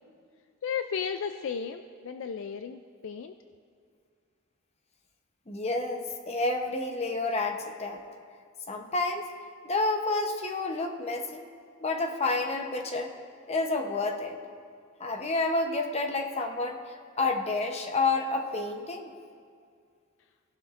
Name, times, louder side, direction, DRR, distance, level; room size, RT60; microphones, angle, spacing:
voice 1, 0.6-3.3, left 7 dB, 60° left, 8 dB, 0.3 m, -34 dB
voice 2, 5.5-8.0 8.7-9.3 9.6-11.4 11.8-13.1 13.5-14.4 15.0-19.1, left 3 dB, 30° left, 4 dB, 0.8 m, -29 dB
17.5 x 11.5 x 2.5 m, 2.2 s
head